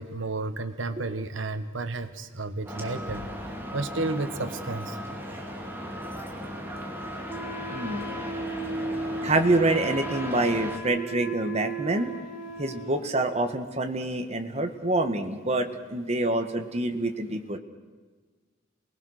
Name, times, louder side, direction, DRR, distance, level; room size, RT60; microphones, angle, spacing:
voice 1, 0.0-3.3 3.7-5.0, right 2 dB, 85° right, 10 dB, 1.3 m, -32 dB
sound 1, 2.7-10.8, equal, 10° right, 2.7 m, -37 dB
Wind instrument woodwind instrument, 7.3-13.2, right 2 dB, 50° left, 4.0 m, -35 dB
voice 2, 7.7-8.1 9.2-12.1 12.6-17.6, right 2 dB, 35° right, 6 dB, 1.5 m, -26 dB
28.0 x 19.5 x 6.5 m, 1.4 s
head